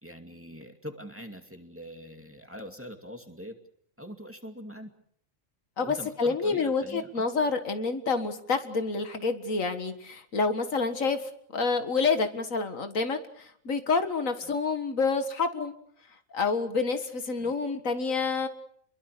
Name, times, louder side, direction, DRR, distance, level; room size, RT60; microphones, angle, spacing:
voice 1, 0.0-3.6 4.0-4.9 5.8-7.3 14.4-14.5 17.4-17.5, equal, 10° right, 4 dB, 2.4 m, -43 dB
voice 2, 5.8-15.7 16.3-18.5, left 4 dB, 75° left, 8 dB, 2.1 m, -28 dB
28.0 x 22.5 x 6.8 m, 0.67 s
omnidirectional pair, 1.4 m